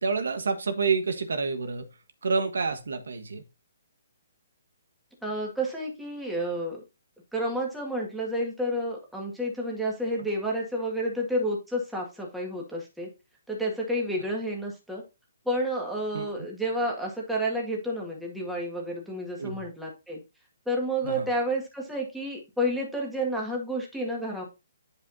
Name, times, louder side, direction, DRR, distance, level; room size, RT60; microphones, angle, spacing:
voice 1, 0.0-1.9 2.2-3.4 16.1-16.3 19.4-19.6 21.0-21.3, right 4 dB, 85° right, 8 dB, 1.4 m, -28 dB
voice 2, 5.2-6.8 7.3-13.1 13.5-15.0 15.5-20.2 20.7-24.4, equal, ahead, -2 dB, 2.0 m, -30 dB
10.5 x 5.1 x 2.8 m, 0.26 s
hypercardioid pair, 155°, 0 cm